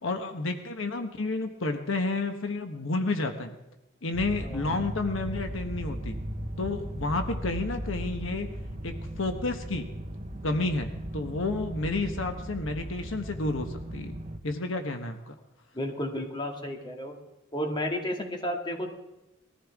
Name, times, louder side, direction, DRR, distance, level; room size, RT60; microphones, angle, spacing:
voice 1, 0.0-3.6 4.0-6.2 6.6-8.5 8.8-9.9 10.4-14.2 14.4-15.4, left 2 dB, 75° left, 6 dB, 1.2 m, -31 dB
sound 1, 4.1-14.4, equal, 35° right, 1.1 m, -37 dB
voice 2, 4.4-4.9 15.7-17.2 17.5-18.9, equal, 25° left, 2 dB, 2.2 m, -32 dB
21.0 x 14.5 x 3.6 m, 0.93 s
head